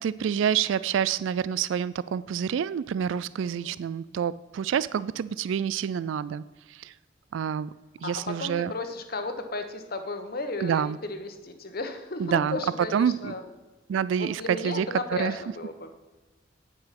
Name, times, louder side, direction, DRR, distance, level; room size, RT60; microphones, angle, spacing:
voice 1, 0.0-6.4 6.7-6.9 7.3-7.7 8.0-8.7 10.6-11.0 12.2-12.6 12.9-13.3 13.9-14.9 15.2-15.3, right 8 dB, 75° right, 17 dB, 0.3 m, -27 dB
voice 2, 3.4-3.8 8.0-13.5 14.2-15.9, left 2 dB, 50° left, 7 dB, 1.1 m, -34 dB
8.9 x 8.8 x 5.9 m, 1.2 s
head